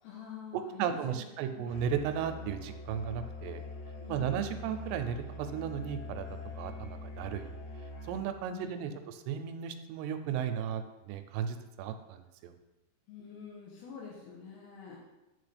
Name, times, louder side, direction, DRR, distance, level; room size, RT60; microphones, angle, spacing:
voice 1, 0.0-1.7 4.0-4.5 8.5-9.1 13.1-15.0, left 6 dB, 80° left, -3 dB, 2.8 m, -47 dB
voice 2, 0.5-3.6 4.1-7.5 8.1-12.5, right 8 dB, 85° right, 8 dB, 2.6 m, -35 dB
Musical instrument, 1.7-8.5, left 3 dB, 55° left, 2.1 m, -43 dB
8.9 x 4.1 x 3.3 m, 0.99 s
omnidirectional pair, 4.7 m